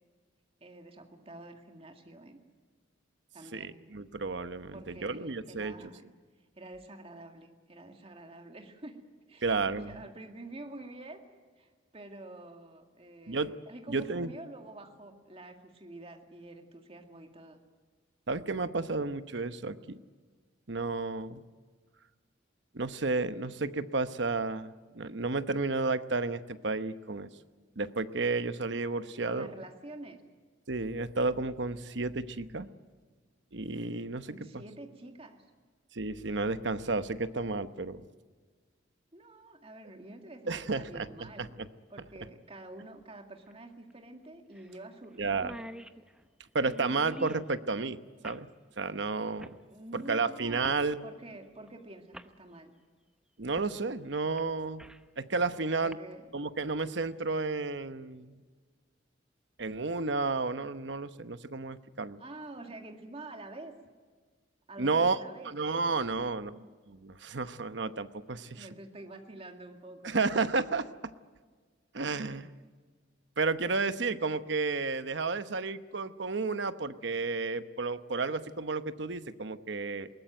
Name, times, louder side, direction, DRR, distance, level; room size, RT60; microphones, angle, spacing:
voice 1, 0.6-2.4 3.3-3.8 4.7-6.0 6.6-9.0 9.3-11.2 11.6-17.6 29.2-30.2 34.3-35.4 39.1-41.6 41.9-45.6 49.7-52.7 55.8-56.2 62.2-63.8 64.7-65.5 66.2-66.3 68.4-70.2, right 2 dB, 30° right, 4 dB, 2.1 m, -47 dB
voice 2, 3.5-5.7 9.4-10.0 13.3-13.6 13.9-14.3 18.3-20.0 20.7-21.4 22.7-27.3 27.8-29.5 30.7-32.7 33.5-34.6 35.9-38.0 40.5-41.7 45.2-45.5 46.5-48.5 48.8-49.5 49.9-51.1 53.4-54.8 55.2-56.0 56.3-58.4 59.6-62.2 64.8-65.2 65.4-66.5 66.9-68.7 70.0-71.1 71.9-72.5 73.4-80.1, right 3 dB, 65° right, 11 dB, 1.0 m, -32 dB
sound 1, 43.5-43.6 43.9-44.0 44.5-44.8 45.0-45.1 45.3-47.5 48.2-48.5 49.4-49.6 50.6-50.9 51.7-51.8 52.1-52.3 53.6-53.7 54.2-55.1 55.7-55.9, equal, 5° right, 0.8 m, -45 dB
21.0 x 19.0 x 9.3 m, 1.5 s
head